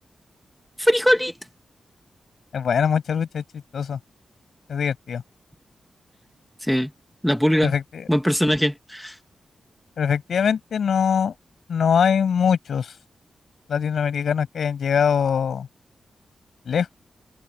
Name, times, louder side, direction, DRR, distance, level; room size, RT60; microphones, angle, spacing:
voice 1, 0.8-1.3 6.7-6.9 7.2-7.7 8.1-9.1, equal, 5° left, 1.8 m, -20 dB
voice 2, 2.5-3.4 3.7-4.0 4.7-5.2 7.6-8.1 10.0-11.3 11.7-12.9 13.7-15.7 16.7-16.9, left 7 dB, 80° left, 6.3 m, -22 dB
wide cardioid pair, 105°, 0 cm